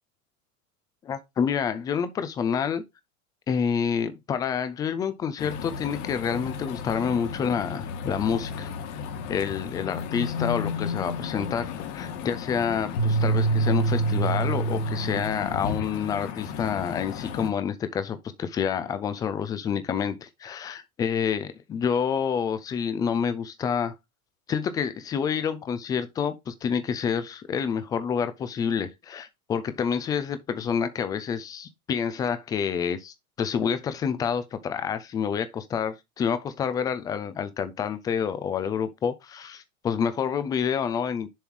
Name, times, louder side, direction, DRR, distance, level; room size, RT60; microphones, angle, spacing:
voice 1, 1.0-2.8 3.5-8.7 9.3-23.9 24.5-41.3, left 7 dB, 10° left, 0.3 m, -28 dB
sound 1, 5.4-17.5, left 7 dB, 55° left, 1.7 m, -34 dB
sound 2, 13.0-15.5, right 3 dB, 75° left, 1.8 m, -25 dB
7.2 x 3.6 x 4.5 m
hypercardioid pair, 120°, 44 cm